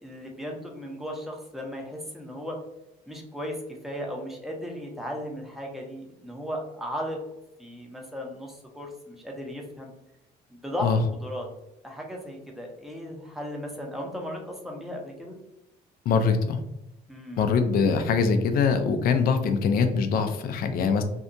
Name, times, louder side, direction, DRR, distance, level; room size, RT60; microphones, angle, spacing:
voice 1, 0.0-2.6 3.1-3.6 3.8-7.2 7.6-9.9 10.5-11.5 11.8-15.4 17.1-17.5, equal, ahead, 0 dB, 0.6 m, -36 dB
voice 2, 16.1-16.6 17.4-21.0, left 5 dB, 60° left, 8 dB, 0.4 m, -23 dB
2.7 x 2.2 x 2.5 m, 0.90 s
cardioid pair, 110°, 17 cm